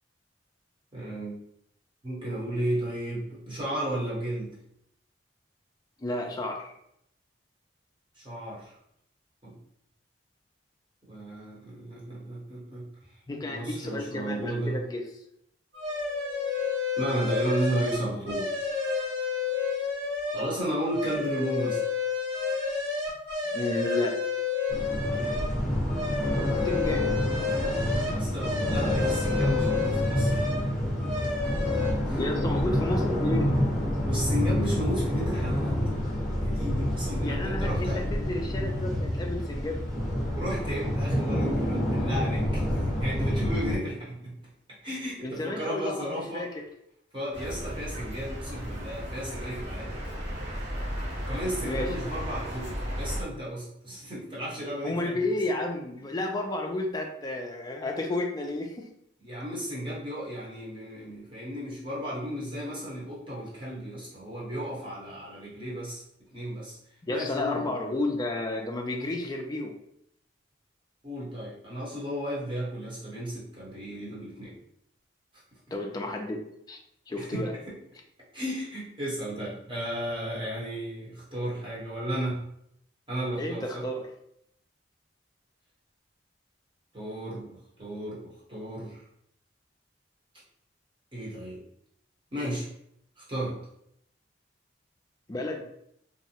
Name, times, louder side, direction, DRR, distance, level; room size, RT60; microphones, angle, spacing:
voice 1, 0.9-1.4 2.0-4.6 8.2-8.8 9.4-9.6 11.1-12.9 13.4-14.8 17.0-18.6 20.3-21.8 24.9-25.4 28.1-30.4 32.1-32.2 34.1-35.8 36.4-38.0 40.3-44.3 44.8-46.5 47.1-50.0 51.2-55.2 59.2-66.0 66.3-66.8 67.1-67.8 71.0-74.6 77.1-77.7 78.3-82.4 83.1-83.8 86.9-89.0 91.1-91.6 92.3-92.7 93.2-93.6, right 1 dB, 25° right, -7 dB, 1.0 m, -34 dB
voice 2, 6.0-6.7 13.3-15.0 23.5-24.2 26.6-27.1 32.2-33.5 37.2-39.8 45.2-46.5 51.6-52.2 54.8-58.9 67.0-69.7 75.7-76.8 77.1-77.5 83.4-84.1 95.3-95.7, left 2 dB, 20° left, 2 dB, 0.3 m, -31 dB
sound 1, 15.7-20.5 20.9-25.5 25.9-30.7 31.0-31.9, left 5 dB, 75° right, 1.2 m, -30 dB
sound 2, 24.7-43.8, equal, ahead, 0.9 m, -28 dB
sound 3, 47.3-53.2, equal, 60° right, 0.9 m, -35 dB
2.6 x 2.1 x 2.8 m, 0.74 s
head